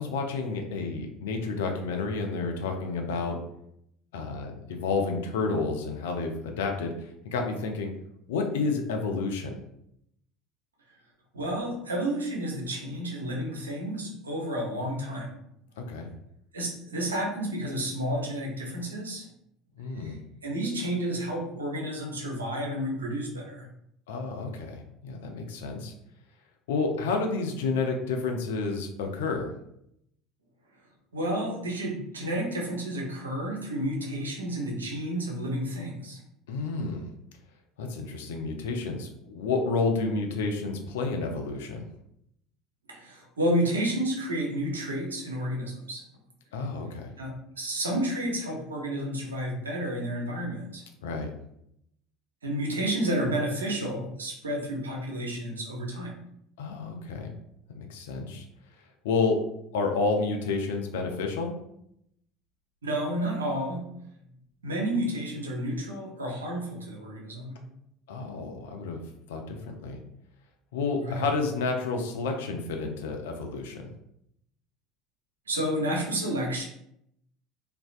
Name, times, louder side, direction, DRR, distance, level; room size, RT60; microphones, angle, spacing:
voice 1, 0.0-3.4 4.1-6.9 7.3-7.9 8.3-9.6 15.8-16.1 19.8-20.2 24.1-25.9 26.7-29.5 36.5-37.1 37.8-41.9 46.5-47.1 51.0-51.3 56.6-57.3 57.7-58.4 59.0-59.4 59.7-61.5 68.1-69.0 69.3-70.0 70.7-73.9, left 4 dB, 70° left, 3 dB, 0.4 m, -30 dB
voice 2, 11.3-15.3 16.5-19.3 20.0-20.1 20.4-23.7 31.1-36.2 42.9-46.0 47.2-50.8 52.4-56.2 62.8-63.9 64.6-67.6 71.0-71.2 75.5-76.7, right 1 dB, 85° right, -1 dB, 0.5 m, -31 dB
2.5 x 2.1 x 2.4 m, 0.76 s
figure-of-eight pair, 65°, 0 cm